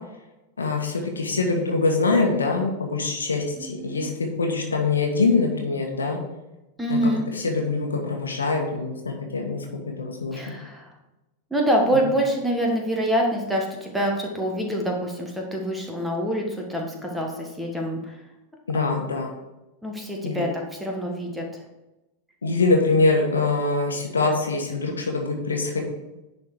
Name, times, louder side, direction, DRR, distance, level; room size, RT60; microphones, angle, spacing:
voice 1, 0.6-6.2 6.9-7.0 7.3-9.6 10.0-10.5 18.7-19.3 20.2-20.4 22.4-25.8, left 3 dB, 75° left, 2 dB, 1.5 m, -24 dB
voice 2, 3.6-4.1 6.8-7.2 10.3-10.9 11.5-18.2 19.8-21.4, equal, 5° right, 0 dB, 1.6 m, -26 dB
10.5 x 4.3 x 4.6 m, 1.0 s
figure-of-eight pair, 90°, 0 cm